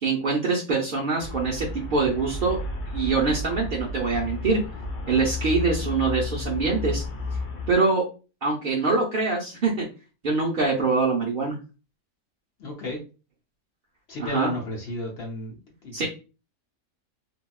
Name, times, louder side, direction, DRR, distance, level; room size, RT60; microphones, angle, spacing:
voice 1, 0.0-2.6 2.9-4.6 5.1-7.0 7.7-8.0 8.4-9.9 10.2-11.6 14.2-14.5 15.9-16.1, right 4 dB, 60° right, -4 dB, 0.5 m, -24 dB
Traffic noise roadway noise, 1.2-7.8, left 2 dB, 85° left, 1.3 m, -32 dB
voice 2, 12.6-13.0 14.1-16.1, left 2 dB, 55° left, -1 dB, 0.8 m, -33 dB
3.4 x 2.2 x 2.2 m, 0.33 s
omnidirectional pair, 1.6 m